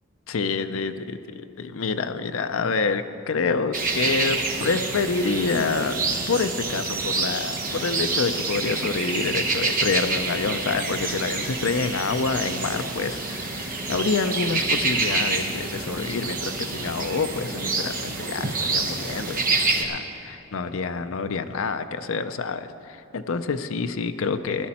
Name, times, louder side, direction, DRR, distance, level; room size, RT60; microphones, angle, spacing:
voice 1, 0.3-6.0 6.3-24.7, left 4 dB, 65° left, 9 dB, 0.5 m, -27 dB
sound 1, 3.7-19.8, right 3 dB, 40° right, 0.9 m, -27 dB
15.5 x 11.5 x 4.3 m, 2.9 s
head